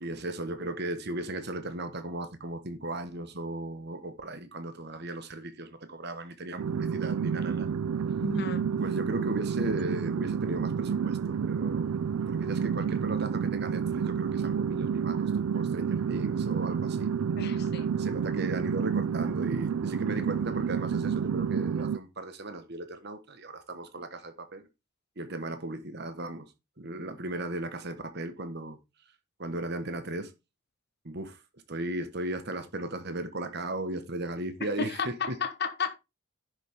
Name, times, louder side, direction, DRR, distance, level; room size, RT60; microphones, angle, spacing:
voice 1, 0.0-7.7 8.8-12.0 12.3-17.1 18.0-24.6 25.2-26.5 26.8-28.8 29.4-30.3 31.0-31.4 31.7-35.4, right 1 dB, 50° right, 1.4 m, -36 dB
sound 1, 6.6-22.0, right 7 dB, 85° right, 0.4 m, -29 dB
voice 2, 8.2-8.6 17.4-17.9 34.8-35.9, left 5 dB, 50° left, 1.1 m, -33 dB
10.5 x 6.6 x 3.6 m
head